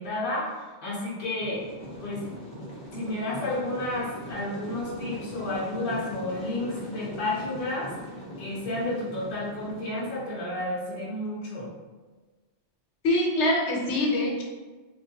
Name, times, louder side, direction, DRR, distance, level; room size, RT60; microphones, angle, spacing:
voice 1, 0.0-1.7 2.0-2.2 2.9-7.9 8.4-11.7, left 1 dB, 55° left, -7 dB, 0.8 m, -31 dB
sound 1, 1.4-10.5, equal, 20° left, 0.8 m, -41 dB
voice 2, 13.0-14.4, left 1 dB, 85° left, -2 dB, 1.0 m, -24 dB
3.1 x 2.6 x 2.7 m, 1.3 s
omnidirectional pair, 1.1 m